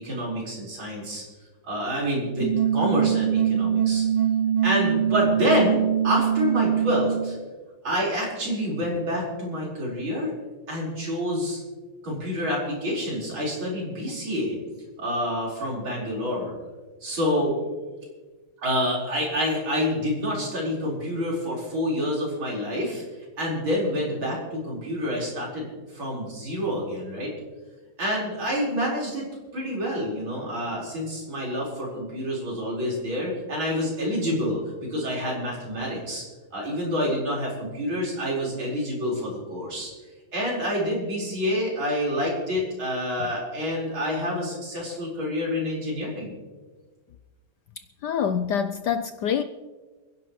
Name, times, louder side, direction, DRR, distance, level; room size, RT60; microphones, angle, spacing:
voice 1, 0.0-1.2 1.6-4.1 4.6-7.4 7.8-10.3 10.7-11.6 12.0-14.6 15.0-16.5 17.0-17.6 18.6-23.0 23.4-25.7 25.9-27.3 28.0-29.2 29.5-34.6 34.9-36.2 36.5-39.9 40.3-46.3, equal, 70° right, 5.5 m, -27 dB
sound 1, 2.4-7.4, right 9 dB, 15° right, 2.8 m, -23 dB
voice 2, 47.8-49.4, left 8 dB, 70° left, 1.0 m, -26 dB
29.0 x 11.0 x 3.2 m
omnidirectional pair, 2.3 m